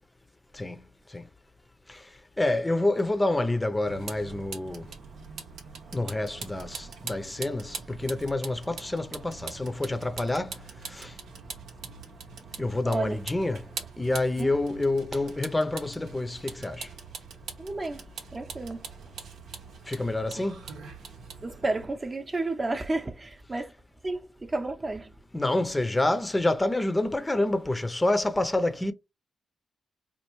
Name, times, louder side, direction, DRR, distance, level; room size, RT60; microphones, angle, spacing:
voice 1, 2.4-4.9 5.9-10.6 10.9-11.1 12.6-13.6 14.0-16.9 19.9-20.7 25.3-28.9, left 2 dB, 20° left, 0.6 m, -28 dB
Vehicle, 3.9-21.8, right 5 dB, 75° right, 0.8 m, -43 dB
voice 2, 12.8-13.2 14.4-14.6 17.6-18.0 18.3-18.8 20.3-20.4 21.4-23.7 24.0-25.1, right 2 dB, 30° right, 0.7 m, -31 dB
4.4 x 2.4 x 3.0 m
supercardioid pair, 55°, 0 cm